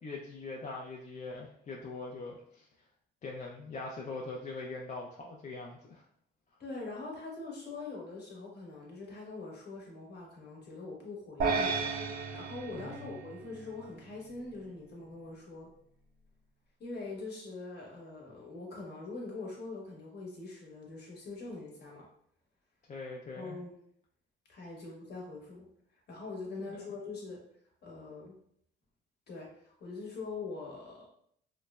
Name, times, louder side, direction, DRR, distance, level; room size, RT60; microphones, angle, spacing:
voice 1, 0.0-2.7 3.2-6.0 12.7-13.1 22.9-23.6 26.6-26.9, left 3 dB, 40° left, -2 dB, 0.4 m, -42 dB
voice 2, 6.6-15.7 16.8-22.1 23.3-23.8 24.5-25.7 25.9-27.4 27.8-28.4 29.3-31.1, left 3 dB, 55° left, -2 dB, 1.0 m, -43 dB
sound 1, 11.4-13.9, right 4 dB, 50° right, 0.4 m, -33 dB
3.0 x 2.1 x 2.3 m, 0.67 s
cardioid pair, 90°, 20 cm